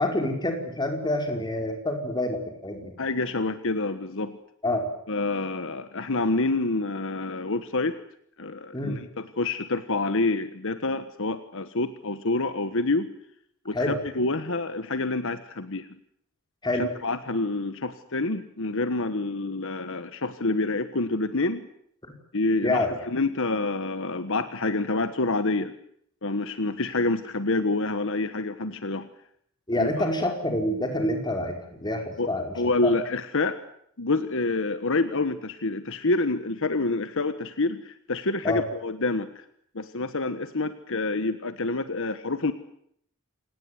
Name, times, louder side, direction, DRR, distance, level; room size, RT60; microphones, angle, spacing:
voice 1, 0.0-3.0 4.6-4.8 8.7-9.0 13.7-14.0 16.6-16.9 22.0-22.1 22.6-22.9 29.7-32.6 32.8-32.9 38.4-38.6, left 1 dB, 20° left, 4 dB, 5.1 m, -27 dB
voice 2, 3.0-4.4 5.1-8.0 8.4-13.1 13.6-15.9 16.7-21.7 22.3-25.7 26.2-29.1 29.7-29.9 32.2-32.3 32.6-33.6 34.0-39.4 39.7-42.5, left 2 dB, 65° left, 11 dB, 1.4 m, -27 dB
28.0 x 19.0 x 9.5 m, 0.70 s
head